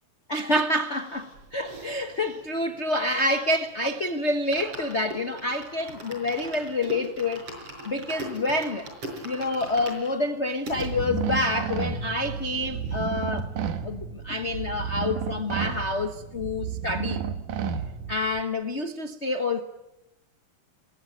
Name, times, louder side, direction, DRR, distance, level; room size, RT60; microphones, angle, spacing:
voice 1, 0.3-7.5 7.8-8.9 9.2-13.5 13.8-17.2 18.1-19.6, left 2 dB, 85° left, 0.6 m, -28 dB
sound 1, 0.9-3.7 4.0-4.1 4.3-10.9 11.5-11.6 11.7-11.8 12.1-13.1 13.4-13.5, right 1 dB, 50° right, 6.8 m, -41 dB
Guitar Noise Slice, 10.7-18.4, right 7 dB, 85° right, 3.0 m, -32 dB
28.0 x 21.5 x 9.1 m
omnidirectional pair, 3.4 m